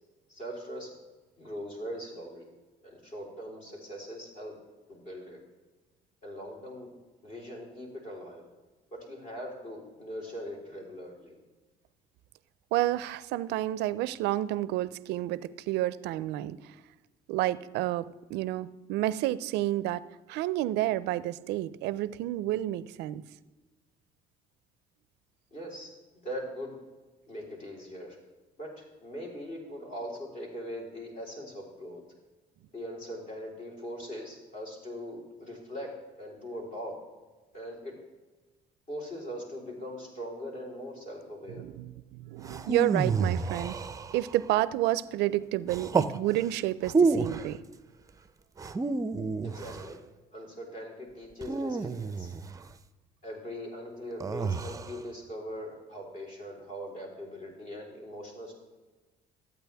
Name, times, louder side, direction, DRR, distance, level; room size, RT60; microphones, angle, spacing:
voice 1, 0.3-0.9 1.4-2.5 2.8-4.6 4.9-5.4 6.2-6.9 7.2-8.4 8.9-11.4 25.5-25.9 26.2-26.7 27.3-28.2 28.6-32.0 32.7-35.9 36.2-37.0 37.5-37.9 38.9-41.6 49.4-50.0 50.3-52.3 53.2-58.5, equal, 50° left, -2 dB, 3.9 m, -41 dB
voice 2, 12.7-16.7 17.3-23.2 41.6-43.8 44.1-47.6, right 15 dB, 85° right, 17 dB, 0.4 m, -30 dB
sound 1, 42.4-44.4 45.7-46.2 46.8-47.5 48.6-49.9 51.4-52.6 54.2-55.0, right 4 dB, 20° right, 0.5 m, -29 dB
13.5 x 8.7 x 3.4 m, 1.2 s
cardioid pair, 110°, 17 cm